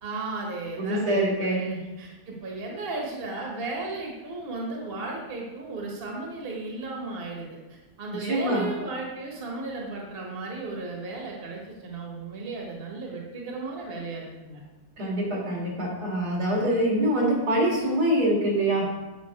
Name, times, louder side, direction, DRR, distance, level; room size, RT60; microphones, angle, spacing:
voice 1, 0.0-14.6, right 3 dB, 40° right, -1 dB, 1.5 m, -35 dB
voice 2, 0.8-1.6 8.1-8.7 15.0-18.9, right 1 dB, 75° right, -4 dB, 2.9 m, -25 dB
8.6 x 5.8 x 4.6 m, 1.1 s
omnidirectional pair, 1.7 m